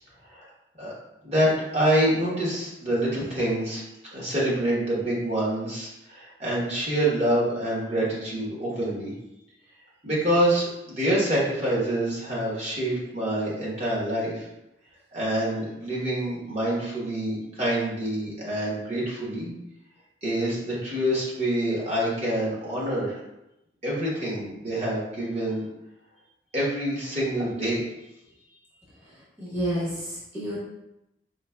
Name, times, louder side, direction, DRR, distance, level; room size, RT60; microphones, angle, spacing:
voice 1, 1.2-3.8 4.1-9.1 10.0-14.5 15.1-19.5 20.2-23.2 23.8-25.6 26.5-27.8, right 1 dB, 35° right, -7 dB, 1.2 m, -26 dB
voice 2, 29.4-30.6, equal, 15° right, -9 dB, 1.0 m, -29 dB
5.0 x 2.9 x 2.3 m, 0.89 s
head